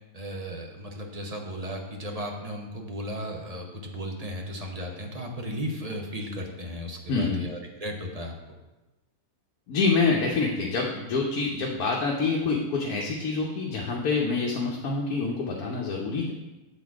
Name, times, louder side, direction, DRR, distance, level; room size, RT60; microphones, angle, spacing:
voice 1, 0.1-8.3, equal, 30° right, 1 dB, 0.8 m, -35 dB
voice 2, 7.1-7.4 9.7-16.3, left 4 dB, 80° left, -1 dB, 1.3 m, -26 dB
7.8 x 4.1 x 4.7 m, 1.1 s
omnidirectional pair, 1.6 m